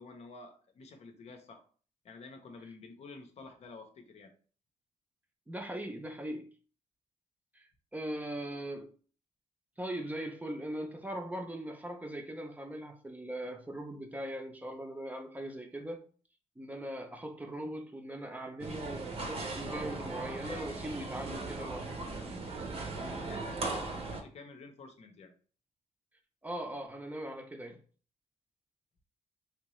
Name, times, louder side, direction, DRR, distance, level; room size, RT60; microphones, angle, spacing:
voice 1, 0.0-1.6 2.0-4.3 22.9-25.3, left 3 dB, 60° left, 0.7 m, -50 dB
voice 2, 5.5-6.5 7.5-8.9 9.8-16.0 16.6-21.9 26.4-27.8, right 1 dB, 10° right, 0.5 m, -40 dB
sound 1, 18.6-24.2, right 3 dB, 50° right, 0.8 m, -38 dB
3.6 x 2.8 x 3.0 m
cardioid pair, 115°, 13 cm